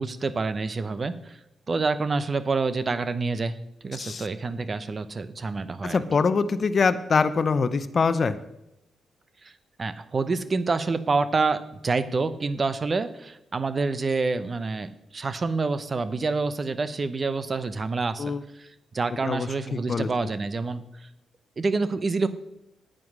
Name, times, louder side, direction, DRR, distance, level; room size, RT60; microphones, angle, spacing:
voice 1, 0.0-1.4 1.7-3.6 3.8-6.0 9.4-9.5 9.8-18.2 18.5-18.7 18.9-21.1 21.6-22.3, right 4 dB, 45° right, 13 dB, 0.8 m, -27 dB
voice 2, 5.8-8.4 18.2-18.4 19.2-20.1, left 5 dB, 50° left, 13 dB, 0.7 m, -24 dB
9.4 x 7.7 x 6.1 m, 0.87 s
hypercardioid pair, 45°, 0 cm